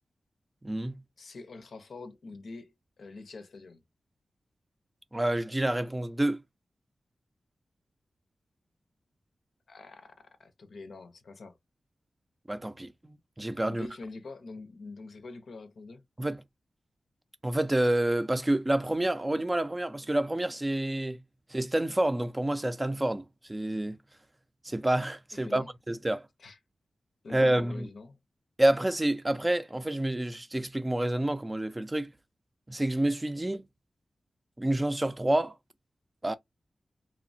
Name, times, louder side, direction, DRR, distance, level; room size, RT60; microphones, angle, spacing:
voice 1, 0.6-1.0 5.1-6.4 12.5-13.9 16.2-16.4 17.4-21.2 21.5-24.0 24.6-26.3 27.3-27.9 28.6-32.1 32.7-33.7 34.6-35.6 36.2-36.3, right 1 dB, 20° right, 0.4 m, -28 dB
voice 2, 1.2-3.8 9.7-10.1 10.4-11.6 13.6-16.0 25.4-25.7 26.4-26.6 27.2-28.2, left 3 dB, 75° left, 0.5 m, -45 dB
2.9 x 2.1 x 2.5 m
cardioid pair, 60°, 0 cm